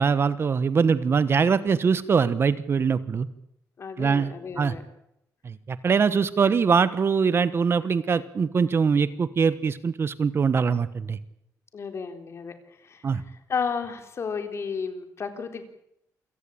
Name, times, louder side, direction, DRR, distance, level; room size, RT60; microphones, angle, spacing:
voice 1, 0.0-3.3 4.0-4.7 5.4-11.2 13.0-13.2, right 5 dB, 35° right, 15 dB, 1.2 m, -23 dB
voice 2, 3.8-4.8 11.7-12.5 12.8-15.6, left 5 dB, 40° left, 7 dB, 3.9 m, -33 dB
28.0 x 17.5 x 8.7 m, 0.79 s
cardioid pair, 135°, 7 cm